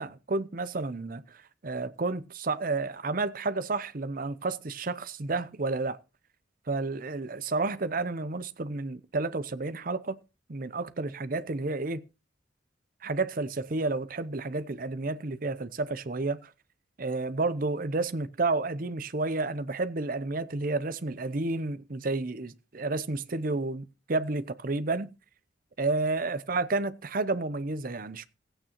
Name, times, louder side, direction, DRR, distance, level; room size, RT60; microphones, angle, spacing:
voice 1, 0.0-6.0 6.7-10.2 10.5-12.0 13.0-16.5 17.0-25.1 25.8-28.2, right 3 dB, 45° right, 0.7 m, -31 dB
16.5 x 8.9 x 2.9 m
head